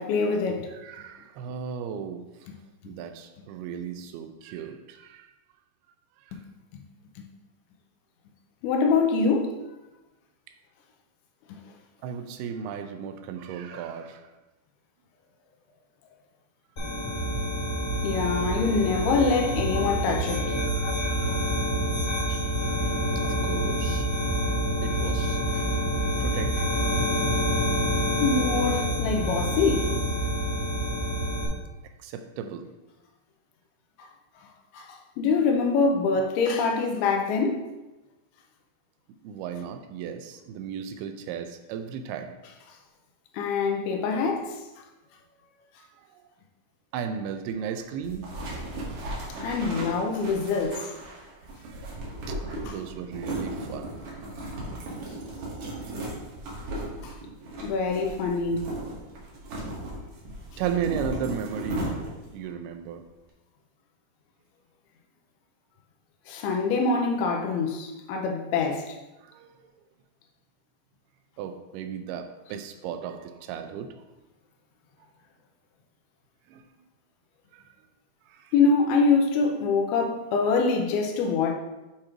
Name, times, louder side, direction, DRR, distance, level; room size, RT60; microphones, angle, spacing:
voice 1, 0.0-0.7 6.7-6.8 8.6-9.5 11.5-11.6 13.7-13.8 18.0-20.6 21.2-21.4 22.3-22.4 28.2-29.9 34.7-37.6 43.3-44.6 49.4-50.9 52.7-52.8 57.0-57.1 57.6-58.8 66.3-69.0 78.5-81.5, left 4 dB, 80° left, 2.4 m, -25 dB
voice 2, 0.7-2.2 2.9-5.3 6.3-6.4 12.0-14.2 20.7-21.6 22.7-24.1 24.8-25.4 26.2-26.7 32.0-32.7 39.2-42.3 45.8-46.2 46.9-48.4 51.6-53.9 60.6-61.8 62.3-63.0 69.2-69.6 71.4-73.9 76.5-76.6 77.5-77.7 78.3-78.5, right 7 dB, 85° right, 2.3 m, -35 dB
sound 1, 16.8-31.4, equal, 50° left, 1.3 m, -27 dB
sound 2, 48.0-62.4, right 1 dB, 60° right, 2.1 m, -36 dB
8.7 x 3.0 x 4.9 m
omnidirectional pair, 4.9 m